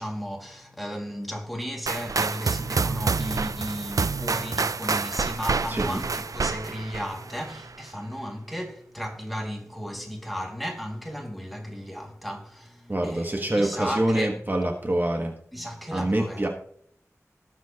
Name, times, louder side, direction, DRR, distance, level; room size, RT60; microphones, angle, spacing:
voice 1, 0.0-14.4 15.5-16.5, equal, ahead, 2.3 m, -34 dB
sound 1, 1.9-7.7, right 4 dB, 85° right, 0.4 m, -28 dB
voice 2, 5.7-6.0 12.9-15.3 15.9-16.5, right 1 dB, 35° right, 1.4 m, -25 dB
19.0 x 7.4 x 2.9 m
wide cardioid pair, 65°, 6 cm